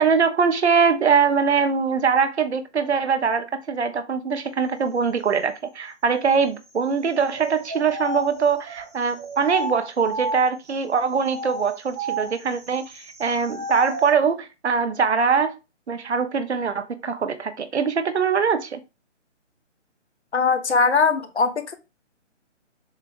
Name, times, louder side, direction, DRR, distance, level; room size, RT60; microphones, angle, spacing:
voice 1, 0.0-15.6 15.9-18.8, right 6 dB, 65° right, 1.2 m, -22 dB
sound 1, 7.3-10.7 11.2-14.2, right 1 dB, 15° right, 0.9 m, -33 dB
voice 2, 20.3-21.7, left 4 dB, 65° left, 1.2 m, -20 dB
7.5 x 3.6 x 3.4 m
hypercardioid pair, 160°, 36 cm